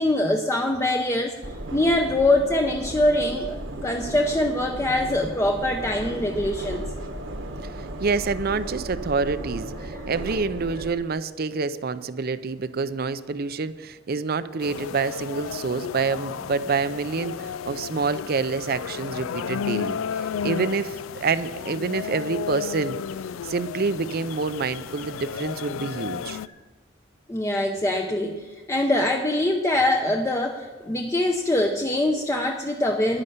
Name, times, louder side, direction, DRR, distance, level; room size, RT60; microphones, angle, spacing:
voice 1, 0.0-1.3 1.7-6.8 9.9-10.0 27.3-33.2, left 1 dB, 15° left, 3 dB, 0.7 m, -23 dB
sound 1, 1.4-10.9, right 1 dB, 70° right, 1.3 m, -35 dB
voice 2, 8.0-23.0 23.4-26.4, right 4 dB, 50° right, 14 dB, 0.5 m, -27 dB
sound 2, 14.6-26.5, left 7 dB, 85° left, 0.4 m, -33 dB
11.0 x 9.8 x 6.7 m, 1.4 s
head